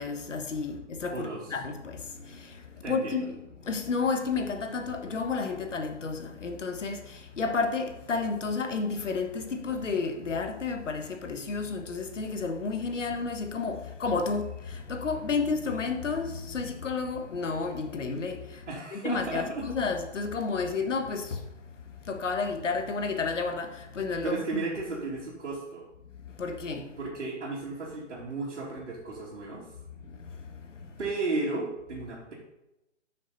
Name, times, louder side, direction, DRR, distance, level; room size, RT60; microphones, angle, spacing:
voice 1, 0.0-2.6 2.9-3.4 3.6-18.6 18.9-21.4 22.1-24.4 26.4-26.9, left 4 dB, 90° left, 1.4 m, -31 dB
voice 2, 1.1-1.6 2.8-3.3 18.7-19.6 24.2-25.9 27.0-29.7 31.0-32.3, right 3 dB, 70° right, 2.6 m, -34 dB
10.0 x 6.2 x 4.1 m
hypercardioid pair, 175°, 36 cm